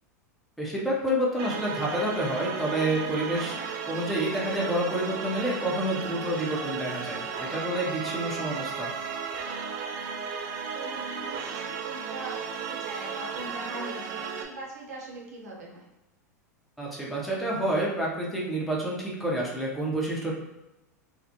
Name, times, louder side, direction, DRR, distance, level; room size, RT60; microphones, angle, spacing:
voice 1, 0.6-3.6 3.9-8.9 16.8-20.3, right 1 dB, ahead, -5 dB, 0.7 m, -29 dB
sound 1, 1.4-14.4, right 6 dB, 50° right, 0.4 m, -34 dB
voice 2, 10.7-15.9, right 2 dB, 70° right, -3 dB, 0.8 m, -41 dB
2.4 x 2.1 x 2.7 m, 0.95 s
hypercardioid pair, 90°, 9 cm